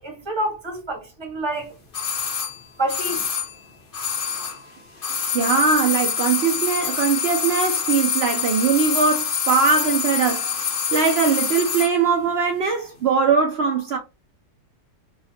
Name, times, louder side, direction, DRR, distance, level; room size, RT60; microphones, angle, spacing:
voice 1, 0.0-1.7 2.8-3.2, right 1 dB, 20° right, 1.0 m, -27 dB
sound 1, 1.9-4.7 5.0-12.0 12.2-12.3, left 7 dB, 45° left, 0.8 m, -26 dB
voice 2, 5.3-14.0, right 5 dB, 70° right, 0.6 m, -21 dB
4.4 x 2.4 x 2.8 m
omnidirectional pair, 1.8 m